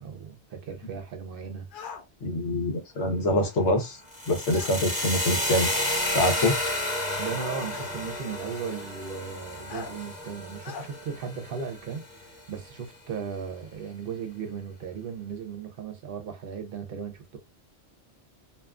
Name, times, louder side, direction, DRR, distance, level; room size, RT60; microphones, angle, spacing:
voice 1, 0.0-1.7 7.2-17.4, right 6 dB, 60° right, 0.8 m, -36 dB
sound 1, 1.7-2.0 4.5-4.8 6.0-6.1 7.7-8.0 9.7-9.9 10.6-10.9, left 6 dB, 60° left, 0.6 m, -40 dB
voice 2, 2.2-4.0 4.3-5.7 6.1-6.5, left 1 dB, 90° left, 1.1 m, -25 dB
sound 2, 4.1-12.1, left 1 dB, 10° right, 0.6 m, -31 dB
2.6 x 2.3 x 2.3 m
omnidirectional pair, 1.2 m